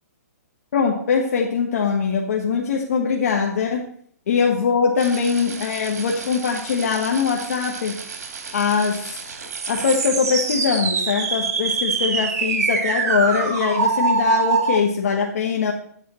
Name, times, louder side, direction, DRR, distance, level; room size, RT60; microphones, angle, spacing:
voice 1, 0.7-3.8 4.3-8.0 8.5-9.2 9.7-15.7, left 6 dB, 60° left, 0 dB, 1.3 m, -22 dB
sound 1, 5.0-14.8, right 5 dB, 65° right, 2.3 m, -25 dB
10.5 x 8.4 x 4.2 m, 0.63 s
hypercardioid pair, 155°, 9 cm